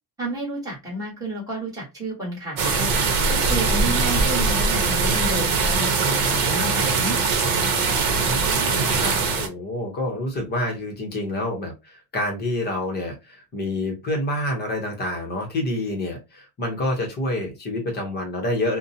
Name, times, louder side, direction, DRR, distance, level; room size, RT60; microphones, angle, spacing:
voice 1, 0.2-2.9 3.3-7.2, right 2 dB, 5° right, -4 dB, 1.1 m, -31 dB
sound 1, 2.6-9.5, right 4 dB, 65° right, 0.9 m, -21 dB
voice 2, 8.1-18.8, left 1 dB, 20° left, 1 dB, 0.7 m, -28 dB
2.6 x 2.1 x 2.6 m, 0.23 s
cardioid pair, 160°, 49 cm